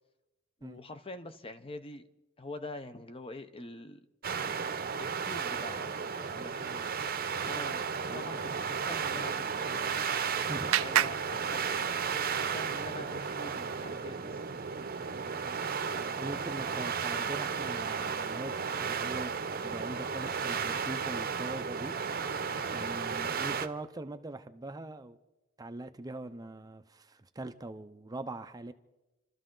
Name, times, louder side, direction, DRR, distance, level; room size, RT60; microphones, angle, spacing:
voice 1, 0.6-2.1 2.4-4.1 5.0-6.9 7.5-9.9 10.8-11.9 12.4-14.4 15.9-16.2, left 2 dB, 25° left, 0.7 m, -45 dB
sound 1, 4.2-23.7, right 6 dB, 45° right, 0.8 m, -34 dB
Clapping, 9.6-12.2, right 12 dB, 75° right, 0.4 m, -33 dB
voice 2, 15.4-19.3 19.6-21.9 22.7-25.2 25.6-28.7, right 2 dB, 20° right, 0.5 m, -42 dB
29.0 x 13.0 x 3.8 m
head